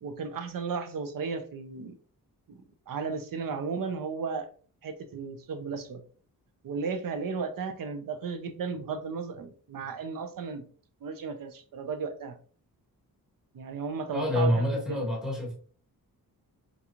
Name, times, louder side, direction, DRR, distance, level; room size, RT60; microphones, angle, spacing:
voice 1, 0.0-1.9 2.5-4.5 4.8-6.0 6.6-10.6 11.0-12.4 13.5-15.1, right 5 dB, 60° right, 8 dB, 0.6 m, -35 dB
voice 2, 14.1-15.5, left 1 dB, ahead, -3 dB, 1.2 m, -27 dB
3.8 x 2.9 x 2.4 m, 0.43 s
wide cardioid pair, 130°, 37 cm